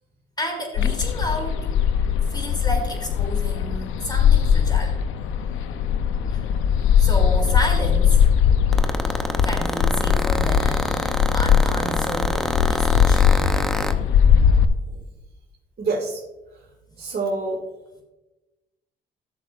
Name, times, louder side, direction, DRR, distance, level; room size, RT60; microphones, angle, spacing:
voice 1, 0.4-1.7 2.3-4.9 6.3-6.4 7.0-8.2 9.4-10.9 11.3-12.4 12.6-13.3, equal, 20° left, 1 dB, 3.0 m, -31 dB
sound 1, 0.7-14.6, left 8 dB, 85° left, 0.6 m, -20 dB
sound 2, 8.7-13.9, equal, ahead, 0.7 m, -25 dB
voice 2, 15.8-16.2 17.0-17.6, right 3 dB, 50° right, -3 dB, 2.1 m, -27 dB
15.5 x 6.5 x 2.5 m, 1.1 s
cardioid pair, 90°, 20 cm